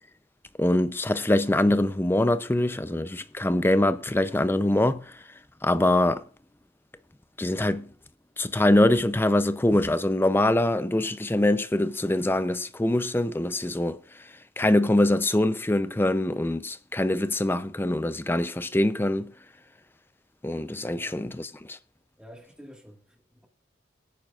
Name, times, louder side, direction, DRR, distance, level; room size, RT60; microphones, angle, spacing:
voice 1, 0.6-5.2 5.6-6.2 7.4-7.9 8.4-19.3 20.4-21.8, left 1 dB, 10° left, 0.5 m, -24 dB
voice 2, 20.9-21.3 22.2-23.5, equal, 5° right, 1.7 m, -49 dB
22.0 x 9.0 x 2.4 m
head